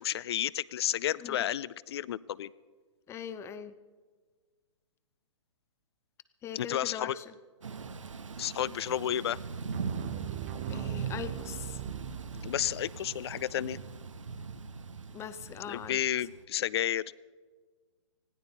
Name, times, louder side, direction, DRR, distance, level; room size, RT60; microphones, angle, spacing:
voice 1, 0.0-2.5 6.5-7.2 8.4-9.4 12.4-13.8 15.7-17.0, left 11 dB, 55° left, 21 dB, 0.5 m, -31 dB
voice 2, 3.1-3.8 6.4-7.3 10.7-11.8 15.1-16.0, left 8 dB, 15° left, 13 dB, 0.7 m, -41 dB
Thunder / Rain, 7.6-16.4, right 5 dB, 85° right, 1.2 m, -41 dB
sound 1, 9.7-12.8, right 15 dB, 35° right, 0.6 m, -40 dB
20.0 x 16.0 x 4.2 m, 1.5 s
hypercardioid pair, 130°, 16 cm